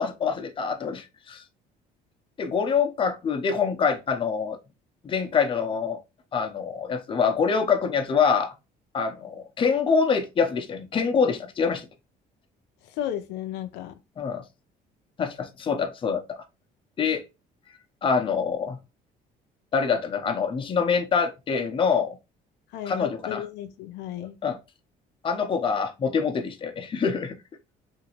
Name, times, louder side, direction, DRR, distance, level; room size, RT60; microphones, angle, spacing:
voice 1, 0.0-1.4 2.4-4.6 5.0-6.0 6.3-8.5 8.9-11.9 14.2-14.4 15.2-16.4 17.0-17.3 18.0-18.8 19.7-22.2 22.9-23.5 24.4-24.6 25.2-27.4, left 6 dB, 30° left, 0.6 m, -25 dB
voice 2, 13.0-14.0 22.7-24.4, left 11 dB, 85° left, 0.4 m, -34 dB
2.8 x 2.5 x 2.8 m
cardioid pair, 110°, 17 cm